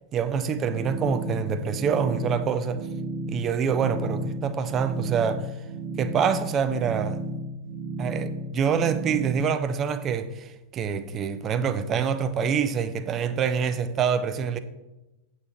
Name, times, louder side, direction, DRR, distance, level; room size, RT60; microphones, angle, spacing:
voice 1, 0.1-2.8 3.3-5.5 6.0-7.2 8.0-14.6, right 7 dB, 30° right, 0.6 m, -26 dB
sound 1, 0.6-9.4, right 2 dB, 60° right, 0.9 m, -33 dB
8.1 x 7.2 x 3.5 m
figure-of-eight pair, 90°, 0 cm